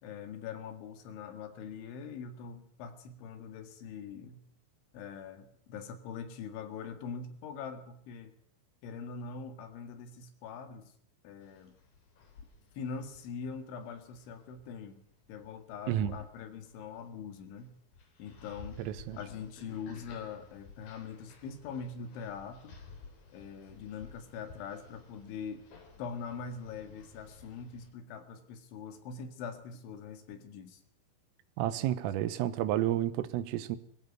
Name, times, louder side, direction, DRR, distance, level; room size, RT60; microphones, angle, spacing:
voice 1, 0.0-4.4 4.9-8.3 8.8-10.9 11.2-11.8 12.8-15.0 15.3-17.7 18.2-22.8 23.3-25.7 26.0-30.8, left 6 dB, 70° left, 4.1 m, -43 dB
sound 1, 11.4-27.9, left 3 dB, 50° left, 4.8 m, -55 dB
voice 2, 18.8-19.2 31.6-33.8, right 12 dB, 85° right, 3.7 m, -31 dB
21.0 x 15.0 x 9.3 m
omnidirectional pair, 5.9 m